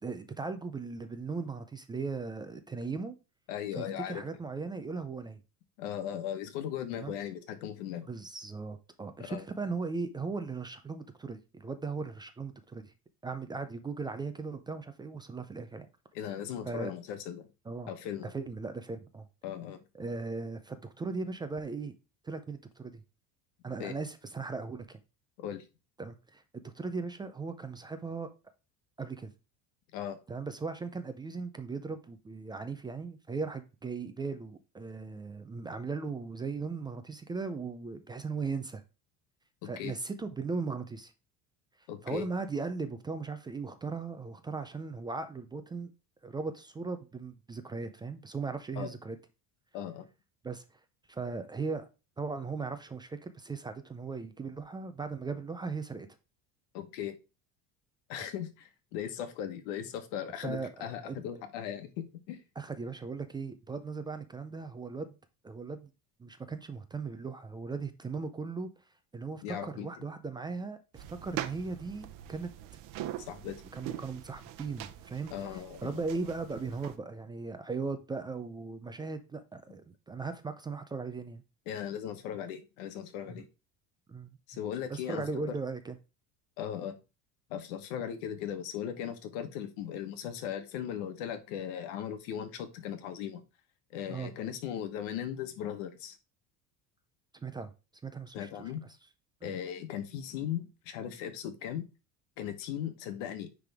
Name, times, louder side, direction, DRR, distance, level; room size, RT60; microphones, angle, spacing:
voice 1, 0.0-3.2 3.7-5.4 6.9-7.1 8.1-12.9 13.2-15.9 16.6-16.9 17.7-17.9 18.3-19.3 19.9-21.9 22.2-23.0 23.6-25.0 26.0-28.3 29.0-29.3 30.3-38.8 39.6-41.1 42.0-45.9 46.2-49.2 50.4-50.6 51.1-51.9 52.2-56.1 58.2-58.3 60.4-61.2 62.6-65.1 65.4-65.9 66.2-68.7 69.1-72.5 73.7-81.4 83.3-83.4 84.1-84.4 84.9-86.0 94.1-94.3 97.3-97.7 98.0-98.7 99.4-99.6, right 4 dB, 10° right, 9 dB, 0.4 m, -38 dB
voice 2, 3.5-4.2 5.8-8.0 9.3-9.4 16.1-17.5 17.9-18.3 19.4-19.8 23.8-23.9 25.4-25.6 29.9-30.2 39.6-39.9 41.9-42.3 48.8-48.9 49.7-50.1 56.7-57.1 58.1-62.4 69.4-69.9 73.2-73.6 75.3-76.0 81.7-83.4 84.5-85.5 86.6-86.9 87.5-93.4 93.9-96.2 98.3-98.9 99.4-101.8 102.4-103.5, left 9 dB, 85° left, 9 dB, 1.3 m, -38 dB
sound 1, 70.9-77.0, right 13 dB, 60° right, 0.8 m, -43 dB
9.6 x 3.4 x 3.5 m, 0.30 s
cardioid pair, 145°, 36 cm